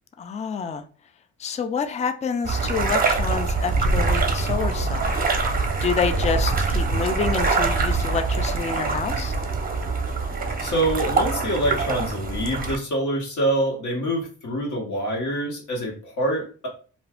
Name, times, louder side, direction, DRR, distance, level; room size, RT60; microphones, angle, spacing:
voice 1, 0.2-0.8 1.4-5.4 5.8-9.3, left 5 dB, 25° left, 8 dB, 0.4 m, -28 dB
sound 1, 2.4-12.8, right 3 dB, 30° right, 0.7 m, -24 dB
voice 2, 10.6-16.7, right 1 dB, 75° left, -2 dB, 1.2 m, -25 dB
2.5 x 2.3 x 3.5 m, 0.39 s
cardioid pair, 90°, 30 cm